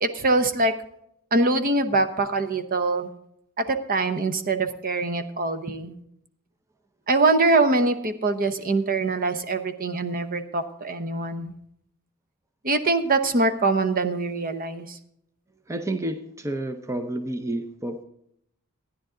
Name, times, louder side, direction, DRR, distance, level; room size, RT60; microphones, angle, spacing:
voice 1, 0.0-0.7 1.3-3.1 3.6-5.9 7.1-11.5 12.6-15.0, right 3 dB, 45° right, 9 dB, 0.9 m, -23 dB
voice 2, 15.7-18.0, right 1 dB, 15° right, 6 dB, 0.7 m, -30 dB
14.0 x 10.0 x 3.8 m, 0.74 s
head